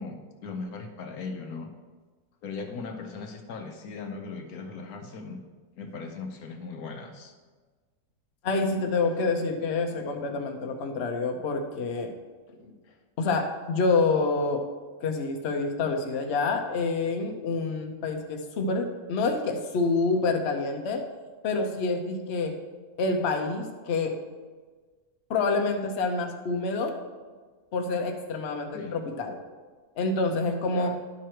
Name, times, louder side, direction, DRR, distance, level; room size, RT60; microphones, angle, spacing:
voice 1, 0.0-1.7 2.4-5.4 5.8-7.3 12.8-13.0 28.7-29.0 30.7-30.9, left 4 dB, 75° left, 5 dB, 1.1 m, -38 dB
voice 2, 8.4-12.1 12.6-12.7 13.2-14.6 15.0-21.0 21.4-22.5 23.0-24.1 25.3-26.9 27.7-29.4 30.0-30.9, left 3 dB, 50° left, 4 dB, 0.9 m, -27 dB
11.0 x 4.7 x 4.5 m, 1.4 s
omnidirectional pair, 1.7 m